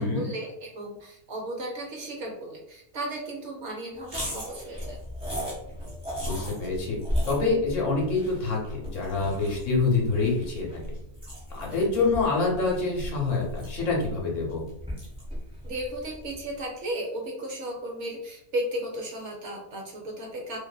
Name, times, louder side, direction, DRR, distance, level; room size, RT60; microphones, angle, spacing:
voice 1, 0.0-5.0 15.6-20.6, right 1 dB, 65° right, 0 dB, 0.9 m, -35 dB
sound 1, 4.0-16.5, equal, 5° right, 0.7 m, -36 dB
voice 2, 6.2-7.0 7.3-10.8 11.5-14.6, left 3 dB, 70° left, -2 dB, 1.0 m, -26 dB
2.5 x 2.5 x 2.2 m, 0.78 s
omnidirectional pair, 1.4 m